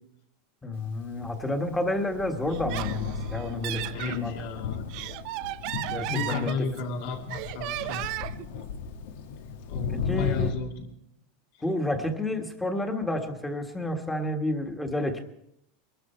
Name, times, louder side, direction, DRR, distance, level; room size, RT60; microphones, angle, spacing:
voice 1, 0.6-4.4 5.9-6.5 9.9-10.5 11.6-15.2, left 1 dB, 5° left, 5 dB, 1.5 m, -30 dB
Thunder, 1.0-10.5, left 6 dB, 80° left, 1.4 m, -35 dB
Laughter, 2.5-4.2 4.7-6.9 7.3-8.5, right 16 dB, 50° right, 0.5 m, -35 dB
voice 2, 3.9-4.8 6.1-8.1 9.6-10.9, left 4 dB, 60° left, 2 dB, 2.6 m, -33 dB
21.5 x 12.5 x 4.4 m, 0.79 s
supercardioid pair, 155°, 0 cm